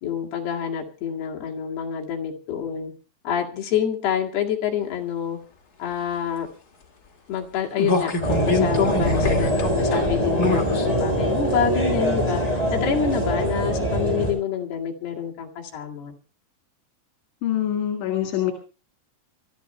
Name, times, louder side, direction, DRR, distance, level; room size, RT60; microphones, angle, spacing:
voice 1, 0.0-2.9 3.2-5.4 5.8-6.5 7.3-12.4 12.7-16.1, left 8 dB, 65° left, 0 dB, 3.9 m, -27 dB
sound 1, 7.8-10.9 11.3-11.4, left 3 dB, 40° left, 1.4 m, -24 dB
sound 2, 8.2-14.3, equal, 10° left, 6.8 m, -23 dB
voice 2, 17.4-18.5, left 11 dB, 85° left, 3 dB, 4.3 m, -24 dB
24.5 x 13.5 x 3.3 m, 0.35 s
omnidirectional pair, 5.3 m